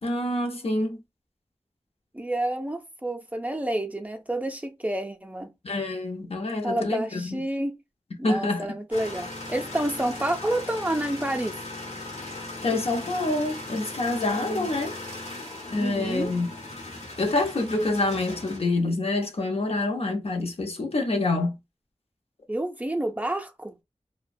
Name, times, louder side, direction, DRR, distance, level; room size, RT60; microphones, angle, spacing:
voice 1, 0.0-1.0 5.6-7.4 8.2-8.7 12.6-15.0 15.7-16.5 17.2-21.5, left 2 dB, 60° left, 0.6 m, -26 dB
voice 2, 2.1-5.5 6.6-7.8 8.2-11.6 14.4-14.7 15.7-16.3 22.5-23.7, right 1 dB, 15° right, 0.4 m, -29 dB
sound 1, 8.9-18.6, left 2 dB, 75° left, 0.9 m, -38 dB
2.4 x 2.1 x 2.5 m
wide cardioid pair, 75°, 11 cm